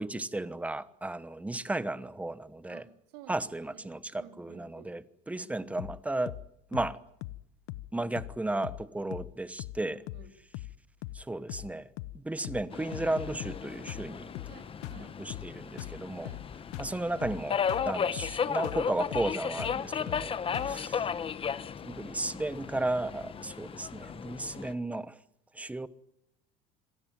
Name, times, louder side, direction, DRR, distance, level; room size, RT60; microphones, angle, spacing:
voice 1, 0.0-2.8 3.3-6.4 6.7-7.0 7.9-10.0 11.1-11.9 12.1-14.3 15.2-16.3 16.8-20.4 20.7-20.9 21.8-25.2 25.5-25.9, right 2 dB, 5° right, 1.1 m, -34 dB
voice 2, 2.7-5.0 5.3-5.5 9.8-10.4 14.4-15.2 16.2-16.6 20.5-20.8, right 8 dB, 90° right, 3.6 m, -54 dB
sound 1, 5.8-6.0 6.3-6.5 6.7-6.9 7.2-7.4 7.7-7.9 8.2-8.4 8.6-8.8 9.1-9.3 9.6-9.8 10.1-10.3 10.5-10.8 11.0-11.2 11.5-11.7 12.0-12.2 12.4-12.7 12.9-13.6 13.9-14.1 14.3-14.6 14.8-15.0 15.3-15.5 15.8-16.0 16.2-16.5 16.7-16.9 17.2-17.4 17.7-17.9 18.2-18.4 18.6-18.8 19.1-19.3 19.6-19.8 20.1-20.3 20.5-20.8, left 17 dB, 80° left, 1.0 m, -40 dB
Subway metro underground, 12.7-24.7, left 7 dB, 25° left, 1.0 m, -35 dB
26.5 x 18.0 x 9.3 m
cardioid pair, 120°, 20 cm